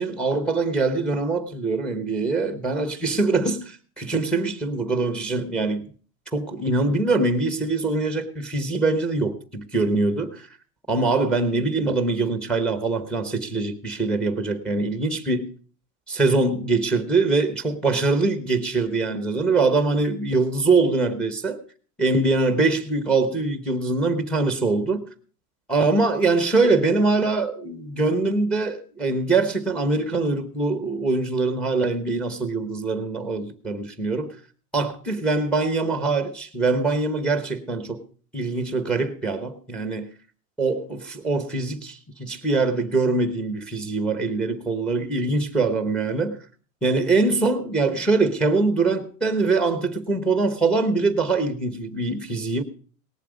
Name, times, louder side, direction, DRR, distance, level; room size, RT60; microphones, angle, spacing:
voice 1, 0.0-5.8 6.3-10.5 10.9-15.5 16.1-21.6 22.0-25.0 25.7-34.3 34.7-38.0 38.3-40.1 40.6-46.4 46.8-52.6, right 3 dB, ahead, 1.0 m, -23 dB
18.5 x 7.5 x 5.0 m
supercardioid pair, 140°, 45 cm